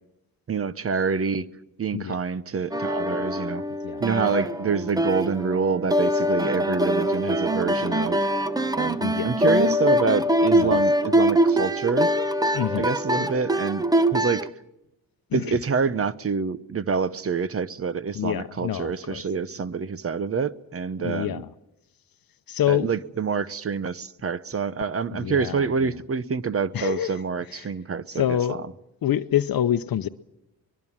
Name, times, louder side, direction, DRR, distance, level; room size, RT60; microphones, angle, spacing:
voice 1, 0.5-1.5 1.8-3.6 4.0-8.2 8.7-12.1 12.8-13.8 14.1-14.5 15.3-21.4 22.7-28.4, right 5 dB, 40° right, 0.8 m, -27 dB
sound 1, 2.7-14.5, equal, 10° right, 0.9 m, -23 dB
voice 2, 3.8-4.3 9.0-9.3 10.5-10.8 12.5-12.9 13.1-13.2 15.3-15.6 18.1-19.2 21.0-21.5 22.5-22.9 25.1-25.9 26.7-27.2 27.5-27.7 28.1-28.6 29.0-30.1, left 11 dB, 70° left, 0.8 m, -27 dB
23.5 x 21.5 x 7.3 m
wide cardioid pair, 170°, 36 cm